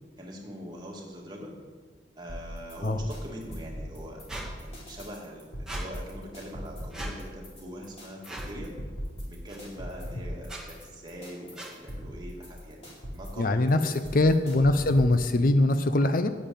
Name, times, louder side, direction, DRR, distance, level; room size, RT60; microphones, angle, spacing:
voice 1, 0.2-1.5 2.2-8.8 9.3-14.3, equal, 25° right, -2 dB, 2.2 m, -43 dB
sound 1, 2.3-15.3, equal, 35° left, 4.1 m, -40 dB
Squeak, 4.3-4.5 5.7-5.8 6.9-7.1 8.2-8.5 9.5-9.6 10.4-10.6 11.5-11.7, right 2 dB, 5° right, 1.9 m, -39 dB
voice 2, 13.4-16.3, left 2 dB, 50° left, 9 dB, 0.6 m, -22 dB
8.8 x 7.3 x 8.9 m, 1.5 s
head